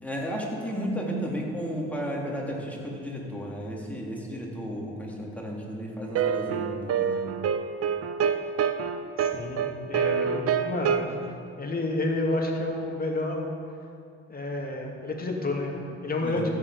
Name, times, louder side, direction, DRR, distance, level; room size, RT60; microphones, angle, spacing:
voice 1, 0.0-7.2 16.2-16.5, equal, 5° left, -3 dB, 3.1 m, -33 dB
sound 1, 6.1-11.1, right 7 dB, 45° right, 0.7 m, -26 dB
voice 2, 9.2-11.0 11.6-13.4 14.3-16.5, left 2 dB, 25° left, 0 dB, 2.4 m, -30 dB
13.5 x 7.5 x 5.0 m, 2.4 s
hypercardioid pair, 55°, 33 cm